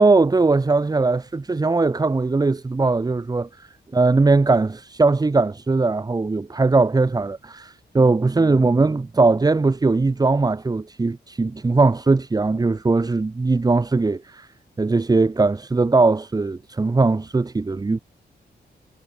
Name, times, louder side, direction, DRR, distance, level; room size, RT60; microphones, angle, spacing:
voice 1, 0.0-3.7 3.9-14.5 14.8-18.0, right 3 dB, 20° right, 5.5 m, -20 dB
wide cardioid pair, 170°, 18 cm